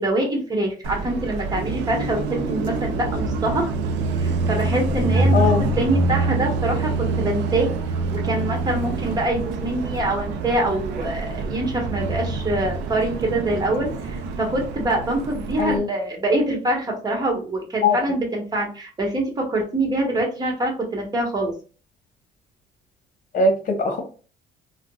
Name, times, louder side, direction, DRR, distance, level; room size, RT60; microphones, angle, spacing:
voice 1, 0.0-3.6 4.2-5.5 5.8-7.7 8.1-21.5, right 1 dB, 25° right, 1 dB, 1.1 m, -25 dB
Car passing by, 0.8-15.8, right 3 dB, 90° right, 0.5 m, -25 dB
voice 2, 5.3-5.6 15.6-15.9 17.8-18.0 23.3-24.0, left 3 dB, 50° left, 3 dB, 1.0 m, -20 dB
3.5 x 2.1 x 2.2 m, 0.37 s
cardioid pair, 110°, 17 cm